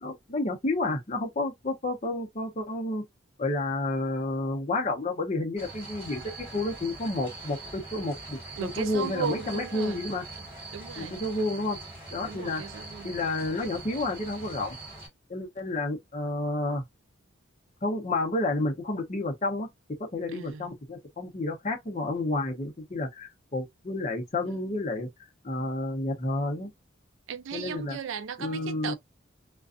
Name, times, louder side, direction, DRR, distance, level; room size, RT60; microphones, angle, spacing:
voice 1, 0.0-3.0 3.4-6.2 6.5-10.2 11.0-11.8 12.1-12.6 13.0-14.8 15.3-16.8 17.8-19.7 20.0-26.7 27.5-28.0 28.4-28.9, left 2 dB, 35° left, 0.7 m, -30 dB
sound 1, 5.6-15.1, right 2 dB, 15° right, 1.5 m, -42 dB
voice 2, 8.6-10.0 10.7-11.2 12.3-13.1 20.3-20.7 27.3-28.9, right 6 dB, 70° right, 0.4 m, -36 dB
2.5 x 2.2 x 2.4 m
head